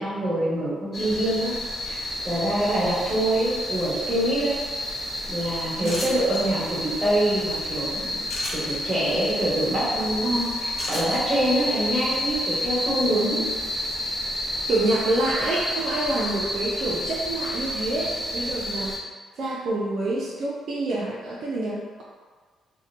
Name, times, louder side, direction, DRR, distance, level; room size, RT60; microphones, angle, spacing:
voice 1, 0.0-1.5 1.8-4.6 5.3-8.1 8.5-10.3 10.9-13.4, right 1 dB, 25° right, -8 dB, 1.2 m, -25 dB
sound 1, 0.9-19.0, left 1 dB, 20° left, 0.5 m, -30 dB
sound 2, 5.8-6.4 8.2-8.7 10.8-11.2, left 1 dB, 60° left, 0.8 m, -33 dB
voice 2, 5.8-6.1 10.2-10.6 13.1-13.6 14.7-19.0 19.4-22.0, right 2 dB, 60° right, -5 dB, 0.4 m, -27 dB
2.8 x 2.1 x 2.5 m, 1.5 s
cardioid pair, 90°, 0 cm